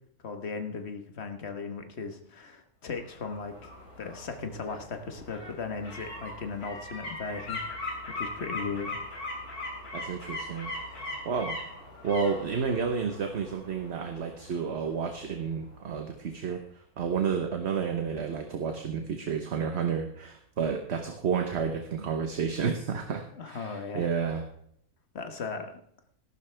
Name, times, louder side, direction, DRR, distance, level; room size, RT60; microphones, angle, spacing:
voice 1, 0.2-3.7 4.0-9.0 23.4-24.1 25.1-25.8, left 4 dB, 45° left, 6 dB, 1.5 m, -37 dB
sound 1, 3.0-15.8 16.2-16.3, left 2 dB, 75° left, 3.8 m, -40 dB
voice 2, 9.9-10.7 11.2-11.6 12.0-16.6 17.0-24.4, right 6 dB, 50° right, 5 dB, 1.2 m, -31 dB
13.5 x 12.0 x 3.4 m, 0.68 s
omnidirectional pair, 1.6 m